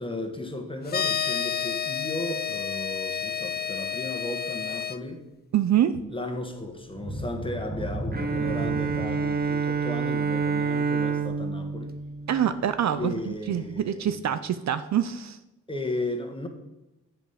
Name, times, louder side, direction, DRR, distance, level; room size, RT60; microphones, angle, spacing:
voice 1, 0.0-5.2 6.1-12.0 12.9-14.2 15.7-16.5, left 1 dB, 15° left, 1.5 m, -35 dB
sound 1, 0.9-5.0, left 8 dB, 30° left, 0.5 m, -30 dB
voice 2, 5.5-6.0 12.3-15.4, right 10 dB, 60° right, 0.5 m, -25 dB
sound 2, 6.9-12.4 12.8-12.9 13.4-13.5, right 1 dB, 80° right, 2.9 m, -36 dB
Bowed string instrument, 8.1-13.0, right 5 dB, 30° right, 0.8 m, -28 dB
7.6 x 5.3 x 5.6 m
supercardioid pair, 55°, 32 cm